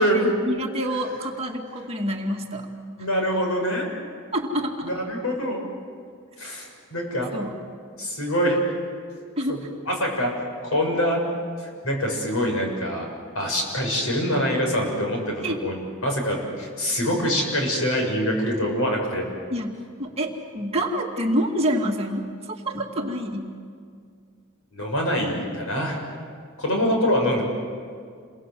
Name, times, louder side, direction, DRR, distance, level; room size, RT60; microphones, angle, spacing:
voice 1, 0.0-2.7 4.3-4.9 7.3-7.6 9.4-9.6 15.4-15.6 19.5-23.5, equal, 30° right, 1 dB, 2.3 m, -27 dB
voice 2, 3.0-3.9 4.8-5.6 6.4-7.3 8.0-8.6 9.1-9.6 9.8-11.2 11.6-13.1 13.3-19.3 24.7-26.0 26.6-27.4, equal, 80° left, 1 dB, 6.6 m, -25 dB
29.0 x 22.5 x 7.7 m, 2.1 s
head